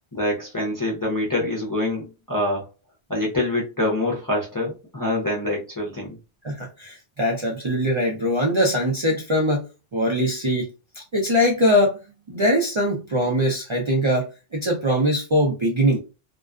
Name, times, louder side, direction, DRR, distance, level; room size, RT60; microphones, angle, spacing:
voice 1, 0.1-2.7 3.1-6.2, left 1 dB, 25° left, -3 dB, 0.5 m, -25 dB
voice 2, 6.4-9.6 9.9-10.7 11.1-12.0 12.3-16.0, equal, 40° right, -3 dB, 0.4 m, -22 dB
2.4 x 2.2 x 2.4 m, 0.30 s
omnidirectional pair, 1.1 m